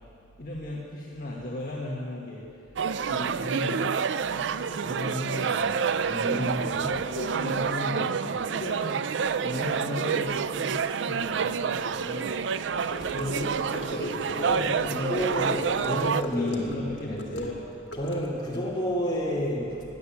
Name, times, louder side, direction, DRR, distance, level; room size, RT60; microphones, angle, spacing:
voice 1, 0.4-2.5 2.9-4.0 4.3-5.8 6.2-9.1 9.4-15.8 16.3-17.6, left 2 dB, 50° left, -4 dB, 1.6 m, -36 dB
sound 1, 2.8-16.2, right 6 dB, 80° right, 0.4 m, -28 dB
voice 2, 6.0-6.8 14.4-16.7 17.0-17.4 17.9-19.8, equal, 25° left, -5 dB, 3.1 m, -30 dB
Gurgling / Car passing by / Sink (filling or washing), 12.9-18.6, equal, 75° left, 2.0 m, -38 dB
18.0 x 10.0 x 7.4 m, 2.7 s
head